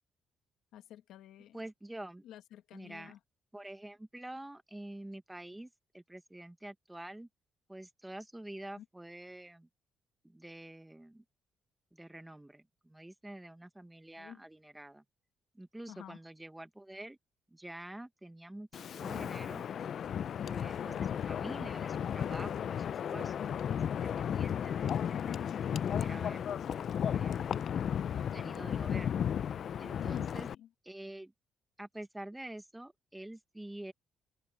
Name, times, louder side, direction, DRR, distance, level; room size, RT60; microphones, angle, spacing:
voice 1, 0.7-1.6 2.2-3.2 8.8-8.9 14.2-14.4 15.9-16.2 23.2-23.7 30.0-30.7, left 11 dB, 85° left, 1.4 m, -50 dB
voice 2, 1.5-2.2 2.7-3.1 3.5-5.7 5.9-7.3 7.7-9.7 10.2-11.2 11.9-15.0 15.5-17.2 17.5-19.6 20.5-25.4 25.9-26.4 27.1-27.7 28.1-29.2 29.8-30.5 30.8-31.3 31.8-33.9, right 1 dB, 10° right, 1.3 m, -47 dB
Wind, 18.7-30.5, left 8 dB, 60° left, 0.4 m, -34 dB
cardioid pair, 90°, 0 cm